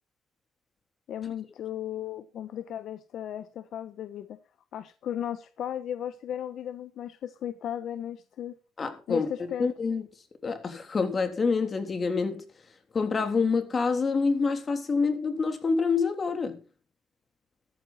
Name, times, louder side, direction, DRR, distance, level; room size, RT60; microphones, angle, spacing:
voice 1, 1.1-4.4 4.7-8.6 9.1-9.7, left 10 dB, 75° left, 1.1 m, -35 dB
voice 2, 8.8-10.0 10.4-12.4 12.9-16.6, left 4 dB, 40° left, 3.4 m, -27 dB
14.0 x 12.5 x 4.3 m
cardioid pair, 90°, 0 cm